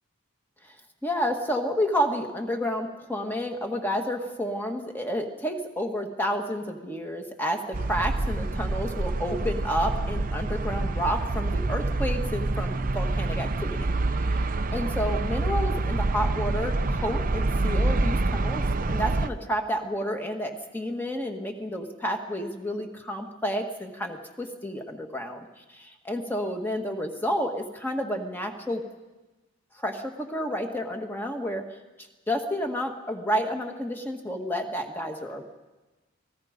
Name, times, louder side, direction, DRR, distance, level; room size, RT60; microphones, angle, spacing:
voice 1, 1.0-13.9 14.2-14.5 14.7-25.4 26.0-28.8 29.7-31.6 32.3-35.4, equal, 10° left, 4 dB, 1.8 m, -30 dB
sound 1, 7.7-19.3, right 2 dB, 40° right, 0.7 m, -27 dB
28.5 x 20.0 x 5.2 m, 1.2 s
head